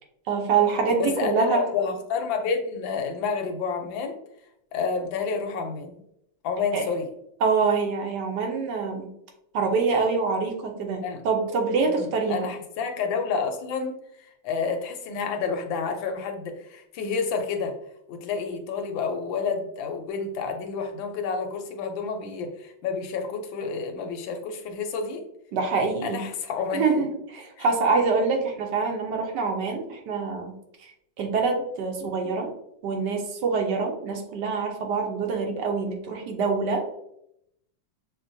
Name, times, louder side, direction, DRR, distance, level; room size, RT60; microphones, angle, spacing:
voice 1, 0.3-1.6 6.7-6.8 7.4-9.1 9.5-12.5 25.5-26.2 26.7-30.5 30.8-30.9 31.2-32.5 32.8-36.8, right 4 dB, 70° right, 3 dB, 1.2 m, -25 dB
voice 2, 1.0-4.2 4.7-6.0 6.4-7.1 11.0-11.2 11.9-17.8 18.1-25.2 26.0-27.1 27.6-27.7, left 5 dB, 90° left, 5 dB, 1.4 m, -29 dB
6.1 x 2.2 x 2.6 m, 0.77 s
omnidirectional pair, 2.0 m